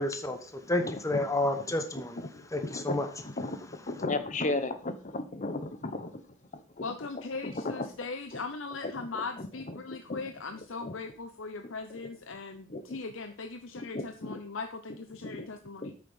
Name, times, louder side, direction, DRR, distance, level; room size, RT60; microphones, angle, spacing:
voice 1, 0.0-2.2 2.5-3.1, left 1 dB, 15° left, 7 dB, 1.1 m, -30 dB
voice 2, 0.8-1.2 1.9-4.7 5.1-6.1 6.5-6.8 7.4-7.9 8.3-8.4 8.8-9.1 9.4-10.2 10.8-10.9 12.7-13.0 13.7-14.4 15.2-15.5 15.8-15.9, left 2 dB, 40° left, 10 dB, 1.0 m, -36 dB
voice 3, 6.8-15.9, left 4 dB, 90° left, 7 dB, 0.8 m, -39 dB
8.6 x 6.8 x 5.5 m, 0.40 s
head